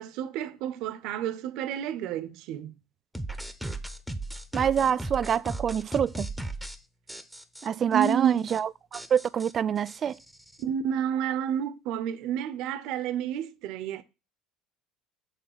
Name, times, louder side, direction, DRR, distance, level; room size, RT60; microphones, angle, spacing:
voice 1, 0.0-2.7 7.9-8.4 10.6-14.0, right 9 dB, 60° right, 0.8 m, -30 dB
sound 1, 3.2-6.8 7.1-7.7 8.0-8.1 8.4-8.6 8.9-10.6, right 2 dB, ahead, 1.1 m, -37 dB
voice 2, 4.5-6.3 7.6-10.2, right 8 dB, 40° right, 0.4 m, -26 dB
8.3 x 3.7 x 5.8 m
figure-of-eight pair, 65°, 0 cm